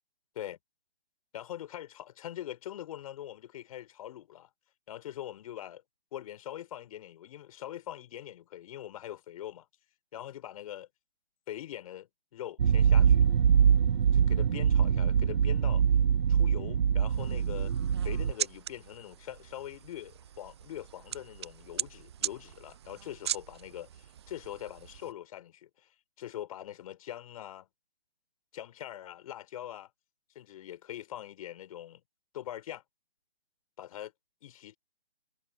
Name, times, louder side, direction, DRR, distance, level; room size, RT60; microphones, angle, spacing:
voice 1, 1.3-4.5 4.9-5.8 6.1-9.7 10.1-10.9 11.5-13.2 14.1-15.8 16.3-17.7 18.0-25.9 26.2-27.7 28.5-29.9 30.3-32.0 32.3-32.8 33.8-34.1 34.4-34.8, left 12 dB, 35° left, 5.9 m, -43 dB
sound 1, 12.6-18.3, right 7 dB, 50° right, 0.9 m, -24 dB
sound 2, 17.1-25.1, right 10 dB, 25° right, 0.7 m, -40 dB
figure-of-eight pair, 150°, 30 cm